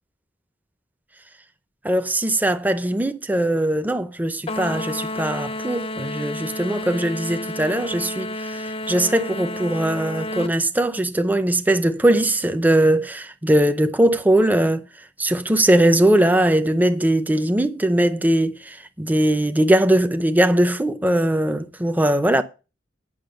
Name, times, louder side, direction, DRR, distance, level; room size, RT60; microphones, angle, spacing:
voice 1, 1.8-14.8 15.2-22.4, right 1 dB, 10° right, 0.6 m, -20 dB
sound 1, 4.5-10.6, left 1 dB, 30° left, 0.6 m, -31 dB
8.7 x 6.1 x 7.8 m
head